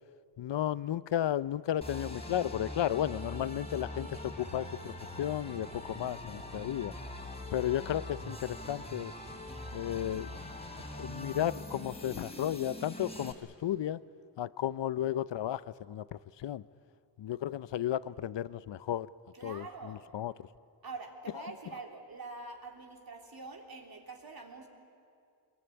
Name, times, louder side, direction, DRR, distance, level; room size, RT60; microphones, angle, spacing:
voice 1, 0.4-6.9 7.5-9.1 9.7-10.3 11.0-13.3 13.6-14.0 14.4-16.6 17.2-19.1 19.4-20.3, left 11 dB, 80° left, 18 dB, 0.7 m, -33 dB
sound 1, 1.8-13.3, left 1 dB, 15° left, 3.1 m, -43 dB
voice 2, 19.3-20.0 20.8-24.7, right 3 dB, 55° right, 2 dB, 3.3 m, -45 dB
24.0 x 22.0 x 9.9 m, 2.4 s
wide cardioid pair, 100°, 42 cm